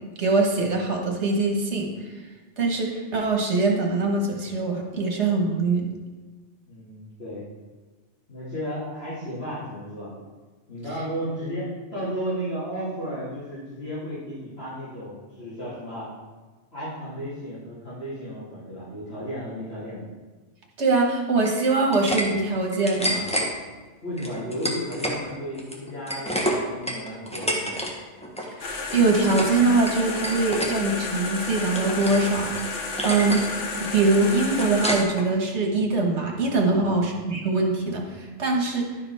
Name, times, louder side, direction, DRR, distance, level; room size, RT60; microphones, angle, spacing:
voice 1, 0.2-1.9 2.6-5.9 20.8-23.3 28.6-32.7 33.0-33.4 33.8-38.9, right 3 dB, 70° right, 0 dB, 1.7 m, -23 dB
voice 2, 6.7-7.5 8.3-10.1 10.7-16.1 16.7-20.0 24.0-27.8 36.7-37.1, equal, 55° left, -12 dB, 2.8 m, -33 dB
sound 1, 21.4-22.3 22.6-23.5 24.2-25.2 25.5-27.9 28.2-28.5 28.9-29.6 29.9-30.7 31.2-32.3 32.6-32.7 33.0-33.5 33.8-35.3, equal, 5° left, 1.1 m, -29 dB
sound 2, 28.6-35.0, left 3 dB, 80° left, 1.4 m, -32 dB
11.5 x 4.9 x 4.8 m, 1.3 s
omnidirectional pair, 1.2 m